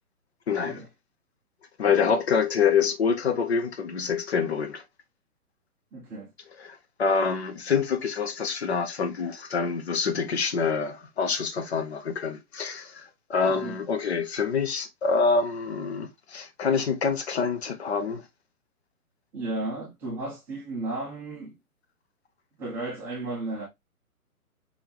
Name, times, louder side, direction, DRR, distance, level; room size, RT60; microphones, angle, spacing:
voice 1, 0.5-0.8 1.8-4.8 6.6-18.2, left 5 dB, 45° left, 0.9 m, -26 dB
voice 2, 5.9-6.3 13.4-13.7 19.3-21.5 22.6-23.6, right 2 dB, 5° right, 0.6 m, -34 dB
5.4 x 3.5 x 2.9 m
figure-of-eight pair, 130°, 45 cm